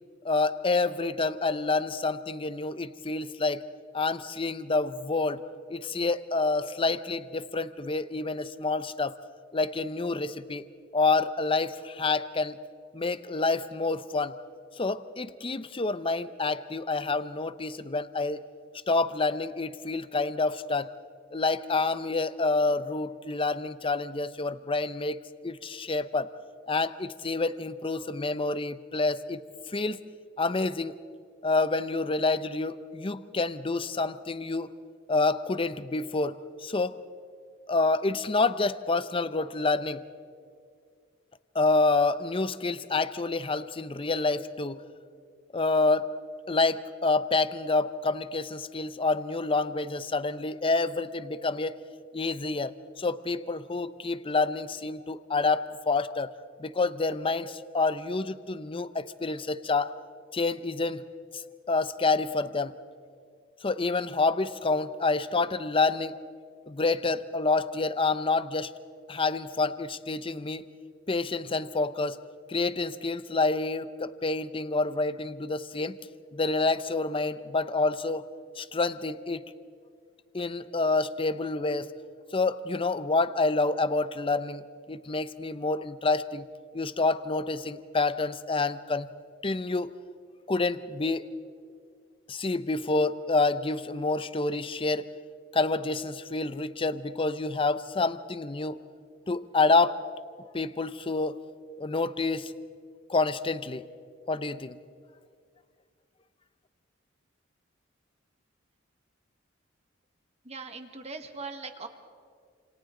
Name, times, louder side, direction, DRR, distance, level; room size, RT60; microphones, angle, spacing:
voice 1, 0.2-3.6 3.9-5.4 5.7-9.1 9.5-10.6 10.9-12.6 12.9-14.4 14.8-18.4 18.9-20.9 21.3-25.2 25.4-26.3 26.7-29.4 29.7-30.0 30.4-30.9 31.4-34.7 35.1-37.0 37.7-40.0 41.5-44.8 45.5-46.1 46.5-51.7 52.1-56.3 56.6-59.9 60.3-61.0 61.3-61.4 61.7-62.7 63.6-66.1 66.7-68.7 69.1-70.6 71.1-72.2 72.5-76.0 76.3-78.2 78.6-79.5 80.3-81.9 82.3-84.6 84.9-86.5 86.7-89.1 89.4-89.9 90.5-91.3 92.3-95.1 95.5-98.8 99.3-100.0 100.5-101.4 101.8-102.5 103.1-103.8 104.3-104.8, left 3 dB, 25° left, 13 dB, 0.7 m, -28 dB
voice 2, 110.4-111.9, right 3 dB, 30° right, 6 dB, 1.6 m, -40 dB
29.0 x 27.5 x 3.8 m, 2.2 s
head